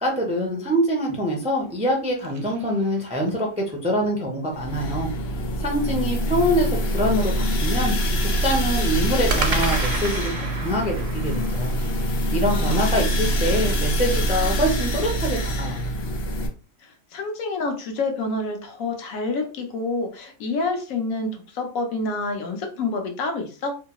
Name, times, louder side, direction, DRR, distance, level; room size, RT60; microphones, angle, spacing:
voice 1, 0.0-5.1 5.6-8.0 8.4-11.7 12.3-15.9, equal, 10° right, 0 dB, 0.3 m, -24 dB
sound 1, 1.6-3.5 9.3-13.6, right 4 dB, 70° right, 1.0 m, -33 dB
sound 2, 4.5-16.5, equal, 60° left, 0.8 m, -24 dB
voice 2, 12.5-13.0 16.8-23.8, left 3 dB, 85° left, 4 dB, 1.1 m, -28 dB
2.8 x 2.3 x 2.9 m, 0.37 s
omnidirectional pair, 1.4 m